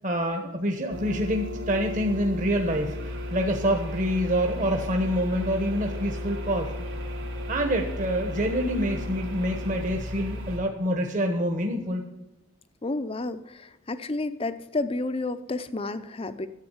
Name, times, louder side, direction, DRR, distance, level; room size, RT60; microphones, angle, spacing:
voice 1, 0.0-6.7 7.5-12.0, equal, 35° right, 3 dB, 1.1 m, -26 dB
sound 1, 0.9-10.6, left 1 dB, 60° right, 2.7 m, -34 dB
voice 2, 12.8-16.5, left 2 dB, 25° left, 12 dB, 0.6 m, -31 dB
10.5 x 8.0 x 7.9 m, 0.97 s
head